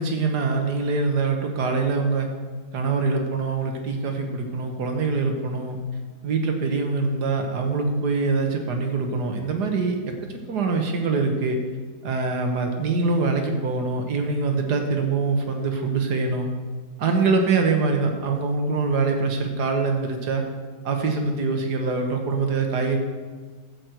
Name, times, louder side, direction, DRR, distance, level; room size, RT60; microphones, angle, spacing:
voice 1, 0.0-2.3 2.7-5.8 6.2-10.0 10.5-11.6 12.0-16.5 17.0-20.4 20.9-23.0, right 4 dB, 70° right, 4 dB, 1.8 m, -24 dB
11.5 x 7.9 x 4.5 m, 1.4 s
omnidirectional pair, 1.8 m